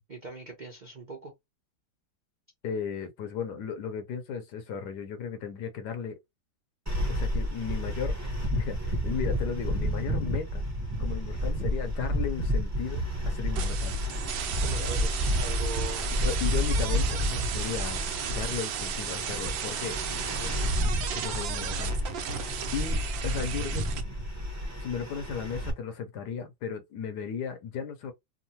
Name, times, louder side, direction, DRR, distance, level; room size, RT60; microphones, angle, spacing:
voice 1, 0.1-1.3 14.6-16.1, right 3 dB, 55° right, 0.5 m, -40 dB
voice 2, 2.6-6.2 7.1-10.6 11.0-14.0 16.1-20.0 20.4-20.6 21.1-22.3 22.7-23.8 24.8-28.1, left 7 dB, 65° left, 1.1 m, -35 dB
sound 1, 6.9-25.7, equal, 10° right, 0.9 m, -30 dB
sound 2, 13.6-24.0, right 8 dB, 75° right, 1.4 m, -35 dB
3.7 x 2.0 x 2.7 m
omnidirectional pair, 2.1 m